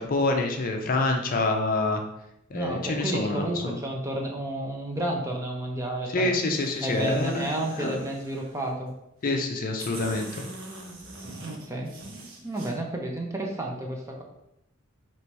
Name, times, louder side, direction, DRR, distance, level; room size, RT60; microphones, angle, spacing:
voice 1, 0.0-2.0 2.5-3.8 6.1-7.5 7.8-8.0 9.2-10.5, left 2 dB, 45° left, 3 dB, 0.5 m, -26 dB
voice 2, 2.5-6.3 6.8-8.9 11.4-11.9 12.4-14.2, right 1 dB, 15° right, 1 dB, 0.5 m, -31 dB
sound 1, 6.4-8.7 9.4-9.5 9.8-12.7, right 2 dB, 75° right, 0.9 m, -44 dB
3.0 x 2.8 x 4.5 m, 0.82 s
head